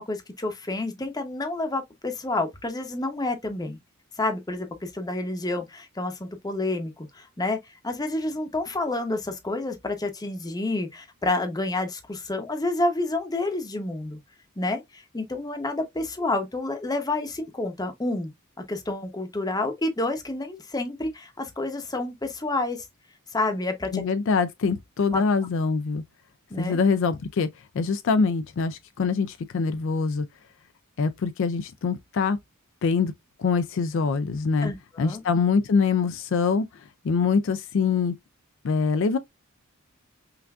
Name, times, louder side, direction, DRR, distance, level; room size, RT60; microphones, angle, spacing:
voice 1, 0.0-3.8 4.2-7.6 7.8-14.2 14.6-18.3 18.7-22.9 23.3-24.0 25.1-25.2 26.5-26.8 34.6-35.2, left 2 dB, 15° left, 0.7 m, -29 dB
voice 2, 23.9-26.0 26.5-27.5 27.7-30.3 31.0-32.4 32.8-33.1 33.4-34.7 35.0-38.1 38.6-39.2, left 5 dB, 60° left, 0.4 m, -24 dB
5.7 x 2.5 x 2.3 m
head